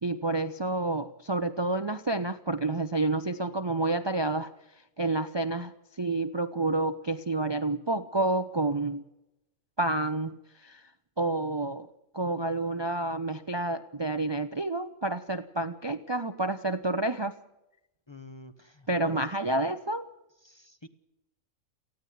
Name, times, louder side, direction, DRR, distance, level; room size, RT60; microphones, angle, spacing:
voice 1, 0.0-4.5 5.0-9.0 9.8-10.9 11.2-11.9 12.1-17.3 18.9-20.0, right 2 dB, 25° right, 9 dB, 0.7 m, -29 dB
voice 2, 18.1-19.2 20.4-20.9, left 1 dB, 20° left, 9 dB, 1.0 m, -46 dB
19.5 x 15.0 x 9.4 m, 0.89 s
omnidirectional pair, 1.4 m